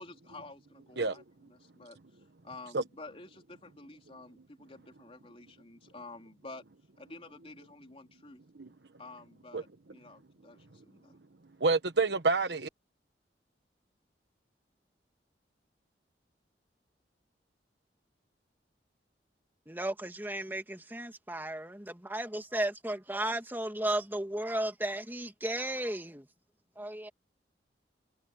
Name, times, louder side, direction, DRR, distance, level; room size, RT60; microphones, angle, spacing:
voice 1, 0.0-2.0 2.4-6.6 7.0-8.4 9.0-11.1, left 2 dB, 35° left, 3.8 m, -50 dB
voice 2, 11.6-12.7, right 3 dB, 70° right, 1.1 m, -28 dB
voice 3, 19.7-26.3 26.8-27.1, right 1 dB, 10° right, 2.4 m, -34 dB
head